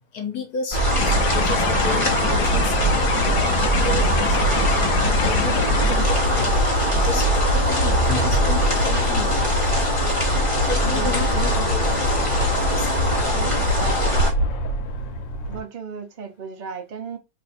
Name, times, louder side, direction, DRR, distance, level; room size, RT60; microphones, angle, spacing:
voice 1, 0.1-6.6 6.9-9.5 10.7-12.3 12.7-13.4, left 5 dB, 60° left, 1.4 m, -33 dB
sound 1, 0.7-14.3, equal, 25° left, 0.8 m, -20 dB
sound 2, 0.9-5.9, left 9 dB, 75° left, 1.1 m, -30 dB
sound 3, 7.7-15.6, right 1 dB, 90° left, 1.4 m, -31 dB
voice 2, 10.8-11.2 13.3-14.2 15.5-17.2, right 5 dB, 85° right, 0.4 m, -35 dB
3.3 x 2.6 x 4.2 m
omnidirectional pair, 2.0 m